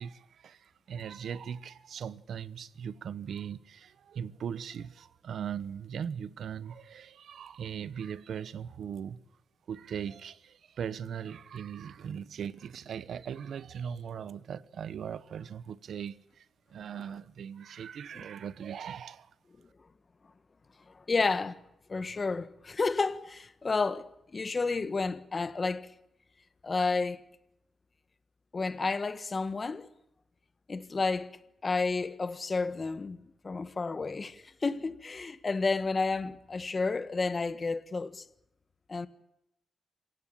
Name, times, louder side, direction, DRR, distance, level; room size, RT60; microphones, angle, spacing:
voice 1, 0.0-9.2 9.7-16.4 16.7-19.3, right 8 dB, 70° right, 1.1 m, -39 dB
voice 2, 20.9-21.6 21.9-25.9 26.6-27.2 28.5-29.9 30.7-31.4 31.6-38.2 38.9-39.1, left 4 dB, 30° left, 1.5 m, -31 dB
27.5 x 16.5 x 8.7 m
wide cardioid pair, 125°, 0 cm